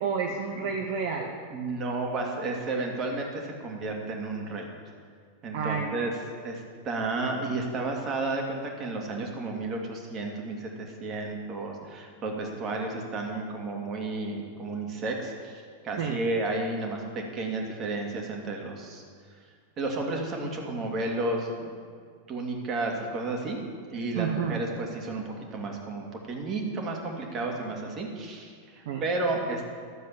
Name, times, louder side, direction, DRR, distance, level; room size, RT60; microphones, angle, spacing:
voice 1, 0.0-1.3 5.5-5.9 16.0-16.2 24.1-24.6 28.9-29.0, right 6 dB, 55° right, 2 dB, 1.0 m, -30 dB
voice 2, 1.5-4.7 5.4-6.1 6.4-19.0 19.8-21.8 22.3-23.6 23.9-25.2 25.5-29.6, right 2 dB, 30° right, 1 dB, 2.3 m, -32 dB
13.0 x 7.4 x 7.3 m, 2.1 s
figure-of-eight pair, 90°, 0 cm